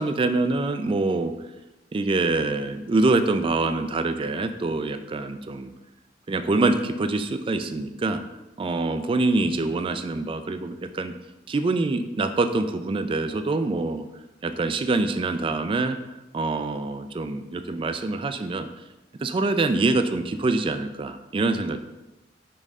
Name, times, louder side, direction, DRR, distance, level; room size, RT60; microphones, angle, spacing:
voice 1, 0.0-1.3 1.9-5.7 6.3-8.2 8.6-11.1 11.5-14.0 14.4-16.0 16.3-18.7 19.2-21.8, right 3 dB, 30° right, 9 dB, 0.3 m, -25 dB
5.3 x 5.3 x 3.6 m, 1.0 s
head